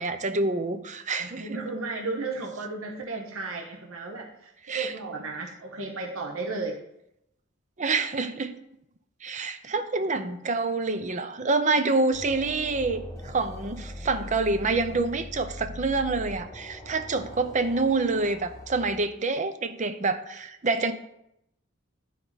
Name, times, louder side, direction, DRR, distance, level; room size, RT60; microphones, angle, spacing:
voice 1, 0.0-1.6 4.6-4.9 7.8-8.5 9.2-20.9, right 3 dB, 35° right, 9 dB, 0.6 m, -27 dB
voice 2, 1.2-6.8, right 3 dB, 90° right, 1 dB, 1.1 m, -34 dB
sound 1, 12.1-19.0, left 1 dB, 15° left, 1.2 m, -41 dB
12.0 x 4.6 x 4.1 m, 0.81 s
head